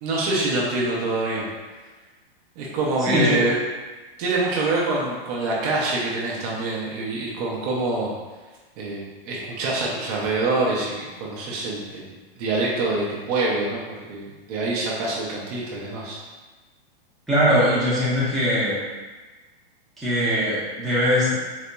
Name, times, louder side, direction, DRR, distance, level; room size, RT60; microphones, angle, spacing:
voice 1, 0.0-1.4 2.6-3.6 4.2-8.1 8.8-12.1 12.4-16.2, right 2 dB, 40° right, -4 dB, 0.7 m, -25 dB
voice 2, 17.3-18.8 20.0-21.3, equal, ahead, -11 dB, 0.7 m, -21 dB
4.0 x 2.7 x 2.2 m, 1.3 s
hypercardioid pair, 145°, 30 cm